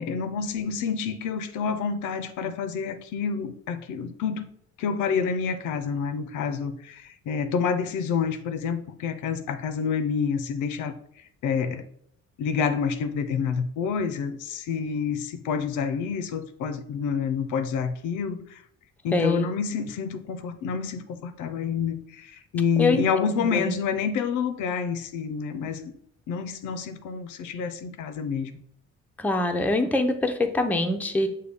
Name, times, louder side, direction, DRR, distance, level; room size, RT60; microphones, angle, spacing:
voice 1, 0.0-4.5 4.8-11.9 12.4-18.6 19.0-25.9 26.3-28.6, left 6 dB, 85° left, 10 dB, 0.5 m, -28 dB
voice 2, 19.1-19.5 22.8-23.0 23.5-23.7 29.2-31.3, left 2 dB, 5° left, 5 dB, 0.4 m, -24 dB
6.5 x 2.2 x 3.4 m, 0.68 s
cardioid pair, 90°, 30 cm